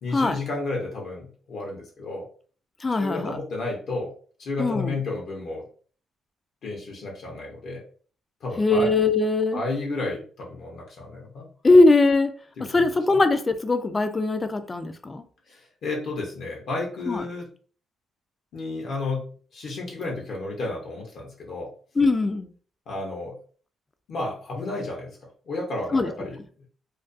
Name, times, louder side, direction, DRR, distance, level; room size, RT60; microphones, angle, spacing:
voice 1, 0.0-2.3 3.0-4.1 4.4-5.6 6.6-7.8 8.4-8.9 9.5-11.5 12.6-12.9 15.5-17.5 18.5-21.7 22.9-23.4 24.1-25.2 25.5-26.4, left 2 dB, 65° left, 0.7 m, -32 dB
voice 2, 2.8-3.4 4.6-4.9 8.6-9.6 11.6-12.3 12.7-15.2 17.1-17.2 22.0-22.5 25.9-26.1, left 2 dB, 25° left, 0.4 m, -20 dB
2.4 x 2.2 x 2.5 m
cardioid pair, 90°, 0 cm